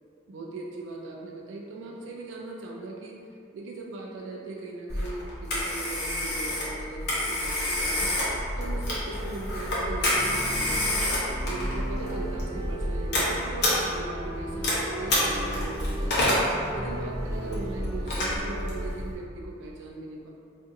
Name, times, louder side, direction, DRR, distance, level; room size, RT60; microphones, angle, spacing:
voice 1, 0.3-8.1 8.6-11.1 11.4-16.3 16.7-20.3, right 3 dB, 80° right, -1 dB, 0.3 m, -39 dB
Telephone, 4.9-19.1, left 1 dB, 60° left, 0.8 m, -28 dB
sound 1, 10.2-18.9, right 1 dB, 20° right, 0.4 m, -38 dB
2.5 x 2.5 x 3.7 m, 2.5 s
head